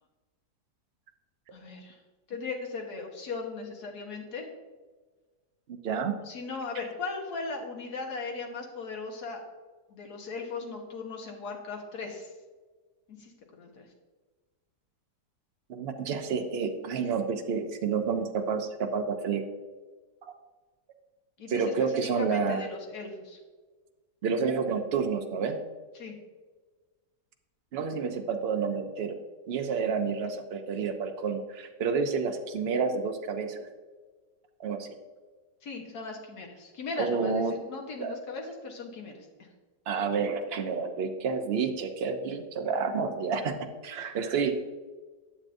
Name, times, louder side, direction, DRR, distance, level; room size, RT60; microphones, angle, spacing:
voice 1, 1.5-2.0 2.3-4.5 6.3-9.4 9.9-12.3 13.1-13.9 21.4-23.4 26.0-26.2 35.6-39.3, left 4 dB, 65° left, 1 dB, 1.7 m, -38 dB
voice 2, 5.7-6.2 15.7-19.4 20.2-20.3 21.5-22.7 24.2-25.6 27.7-29.2 29.5-33.7 34.6-34.9 37.0-37.6 38.0-38.2 39.9-43.5 43.8-44.5, right 5 dB, 60° right, 5 dB, 0.6 m, -29 dB
9.9 x 7.3 x 2.6 m, 1.3 s
omnidirectional pair, 1.8 m